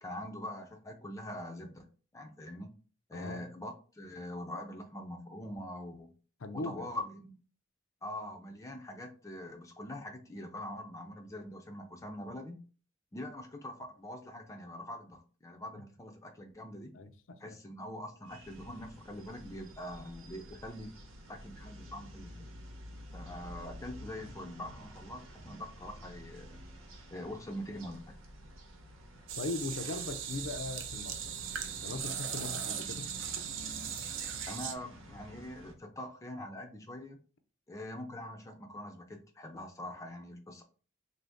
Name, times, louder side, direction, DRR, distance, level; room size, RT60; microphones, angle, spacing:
voice 1, 0.0-1.9 2.1-2.7 3.1-6.1 6.5-7.4 8.0-12.6 13.1-16.9 17.4-20.9 21.3-22.5 23.1-26.6 27.1-28.1 34.5-37.2 37.7-40.6, left 1 dB, 15° left, 0.4 m, -43 dB
voice 2, 3.1-3.4 6.4-6.9 16.9-17.4 29.4-31.4 31.8-33.1, left 3 dB, 70° left, 0.5 m, -39 dB
sound 1, 18.2-35.7, equal, 90° right, 0.9 m, -50 dB
sound 2, 29.3-34.8, right 8 dB, 70° right, 0.5 m, -39 dB
3.7 x 2.6 x 3.4 m
head